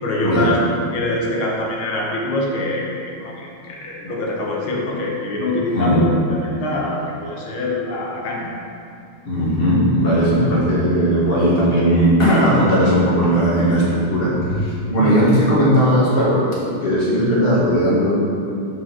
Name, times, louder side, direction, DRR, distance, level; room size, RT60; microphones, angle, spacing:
voice 1, 0.0-0.6 0.9-2.9 3.2-8.5 15.0-15.2, left 2 dB, 85° left, -3 dB, 1.9 m, -24 dB
voice 2, 9.2-16.4 16.8-18.1, equal, 30° left, -7 dB, 1.6 m, -17 dB
6.1 x 4.7 x 5.9 m, 2.4 s
omnidirectional pair, 2.2 m